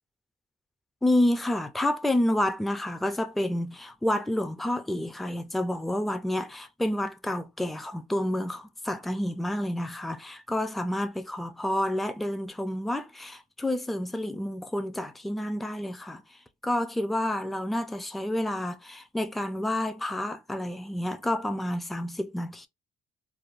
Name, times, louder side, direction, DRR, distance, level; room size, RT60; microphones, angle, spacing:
voice 1, 1.0-16.2 16.6-22.7, left 1 dB, ahead, 0.3 m, -29 dB
3.3 x 2.1 x 2.4 m
cardioid pair, 90°, 20 cm